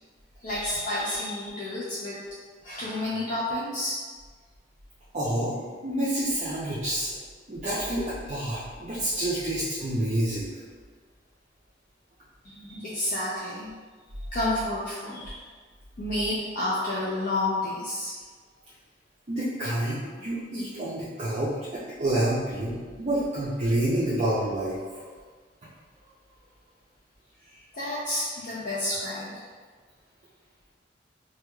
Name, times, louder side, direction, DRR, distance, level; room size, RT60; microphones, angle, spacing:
voice 1, 0.4-2.2 2.6-4.0 12.4-13.7 14.3-15.4 16.0-18.2 27.4-29.5, left 1 dB, 45° left, -9 dB, 0.5 m, -30 dB
voice 2, 5.1-7.1 7.5-10.5 19.3-25.0, right 1 dB, 35° right, -9 dB, 0.5 m, -28 dB
4.4 x 2.3 x 2.2 m, 1.5 s
head